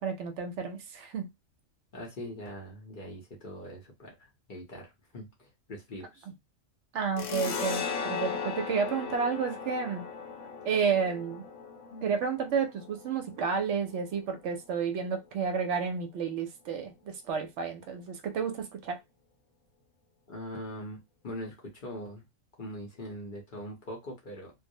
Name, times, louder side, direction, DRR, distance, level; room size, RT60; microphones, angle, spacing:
voice 1, 0.0-1.3 6.9-10.0 10.6-11.4 12.0-19.0, right 6 dB, 70° right, 0.8 m, -31 dB
voice 2, 1.9-6.3 11.9-12.1 20.3-21.0 21.2-22.2 22.6-24.5, equal, 50° left, 0.7 m, -42 dB
sound 1, 7.2-14.3, left 5 dB, 70° left, 0.9 m, -37 dB
2.3 x 2.0 x 2.6 m
omnidirectional pair, 1.3 m